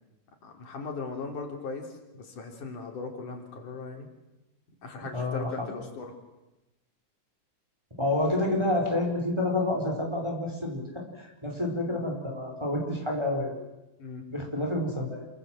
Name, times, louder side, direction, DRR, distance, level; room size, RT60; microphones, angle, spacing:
voice 1, 0.4-1.9 2.1-4.1 4.8-6.1 14.0-14.2, left 4 dB, 70° left, 3 dB, 4.9 m, -38 dB
voice 2, 5.1-5.7 8.0-13.6 14.3-15.3, left 1 dB, 10° right, 1 dB, 4.7 m, -29 dB
28.0 x 24.5 x 7.7 m, 0.99 s
omnidirectional pair, 3.7 m